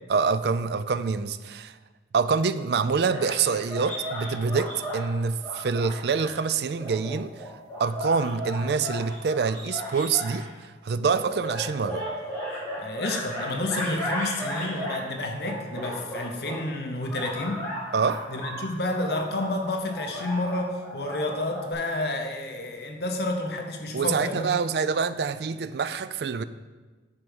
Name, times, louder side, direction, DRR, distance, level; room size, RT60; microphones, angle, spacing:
voice 1, 0.1-1.8 2.1-7.4 7.8-12.1 17.9-18.2 23.9-26.4, right 5 dB, 65° right, 13 dB, 0.4 m, -26 dB
sound 1, 3.1-5.0 5.4-6.3 6.8-10.4 11.2-15.0 15.4-16.6 17.0-21.7, equal, 10° left, 2.5 m, -35 dB
voice 2, 12.8-17.6 18.3-24.6, left 2 dB, 60° left, 4 dB, 0.9 m, -30 dB
11.0 x 4.6 x 5.4 m, 1.3 s
head